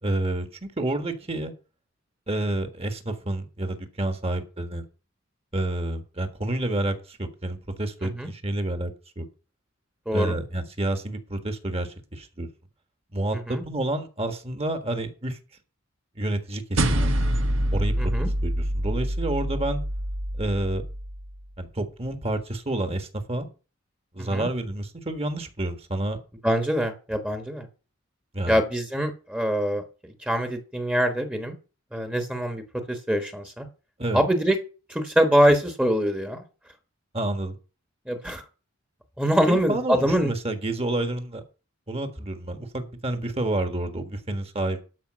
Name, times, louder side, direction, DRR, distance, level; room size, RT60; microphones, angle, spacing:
voice 1, 0.0-1.5 2.3-4.8 5.5-9.3 10.1-12.5 13.1-15.4 16.1-17.1 17.7-19.8 20.3-20.8 21.6-23.5 24.1-26.2 28.3-28.6 34.0-34.2 37.1-37.5 39.5-41.4 41.9-44.8, right 1 dB, 30° right, 7 dB, 1.5 m, -29 dB
voice 2, 10.1-10.4 13.5-13.6 18.0-18.3 24.2-24.5 26.4-27.7 28.5-31.6 31.9-32.6 32.9-33.7 34.1-34.6 34.9-36.4 38.1-38.4 39.2-40.3, equal, 5° right, 6 dB, 1.2 m, -24 dB
sound 1, 16.8-21.4, right 1 dB, 65° right, 1.3 m, -26 dB
12.5 x 5.2 x 6.3 m, 0.34 s
head